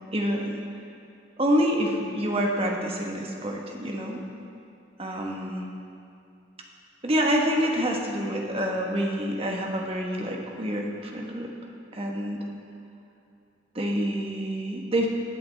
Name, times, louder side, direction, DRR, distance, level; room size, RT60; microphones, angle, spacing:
voice 1, 0.1-0.6 1.4-4.2 5.0-5.7 7.0-11.5 11.9-12.4 13.7-15.1, equal, 30° right, 0 dB, 1.4 m, -27 dB
21.0 x 7.8 x 3.6 m, 2.6 s
head